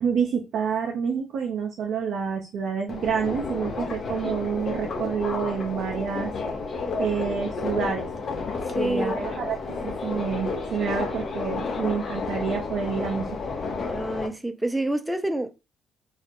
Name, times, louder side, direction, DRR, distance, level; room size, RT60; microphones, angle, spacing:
voice 1, 0.0-6.3 7.0-8.1 8.7-13.3, right 6 dB, 65° right, 0.4 m, -28 dB
Subway metro underground, 2.9-14.3, left 4 dB, 50° left, 0.6 m, -31 dB
voice 2, 8.7-9.2 13.9-15.5, right 1 dB, 10° right, 0.4 m, -28 dB
2.3 x 2.0 x 2.8 m
hypercardioid pair, 55°, 0 cm